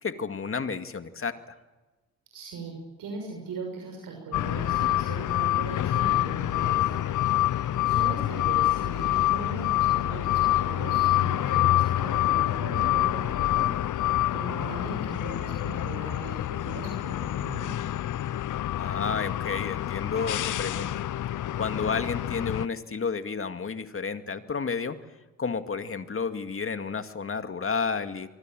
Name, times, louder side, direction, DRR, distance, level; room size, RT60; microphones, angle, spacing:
voice 1, 0.0-1.6 18.8-21.0 21.6-25.0 25.4-28.3, left 5 dB, 40° left, 8 dB, 2.2 m, -31 dB
voice 2, 2.3-13.7 14.3-17.8, right 3 dB, 75° right, 2 dB, 6.6 m, -39 dB
sound 1, 4.3-22.7, left 14 dB, 60° left, 0.8 m, -26 dB
25.5 x 24.0 x 7.7 m, 1.2 s
supercardioid pair, 65°, 35 cm